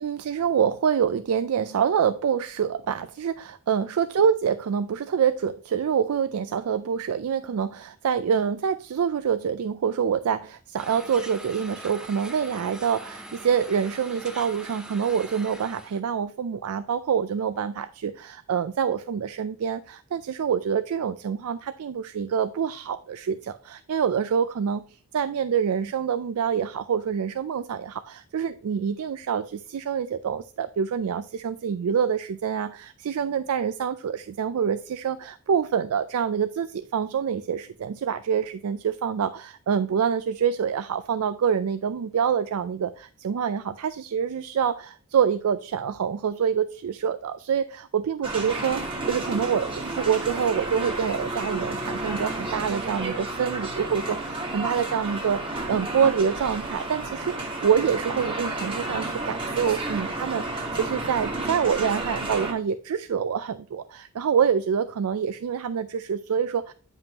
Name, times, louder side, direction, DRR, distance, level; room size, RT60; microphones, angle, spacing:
voice 1, 0.0-66.7, right 7 dB, 85° right, 12 dB, 0.4 m, -26 dB
sound 1, 10.8-16.0, right 1 dB, 5° right, 0.6 m, -42 dB
sound 2, 48.2-62.5, right 2 dB, 25° right, 1.4 m, -31 dB
9.1 x 5.4 x 2.9 m, 0.38 s
head